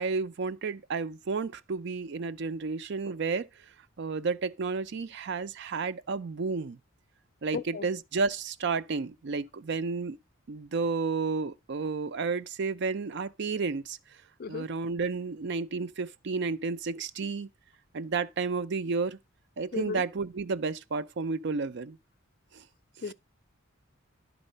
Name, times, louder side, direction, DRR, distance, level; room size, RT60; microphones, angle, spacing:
voice 1, 0.0-3.5 4.0-6.8 7.4-10.2 10.5-14.0 14.5-17.5 17.9-19.2 19.6-22.0 22.5-22.6 23.0-23.1, right 4 dB, 55° right, 0.5 m, -31 dB
voice 2, 7.5-7.9 14.4-14.7 19.7-20.0 23.0-23.1, left 5 dB, 45° left, 0.4 m, -34 dB
11.5 x 4.1 x 5.4 m
head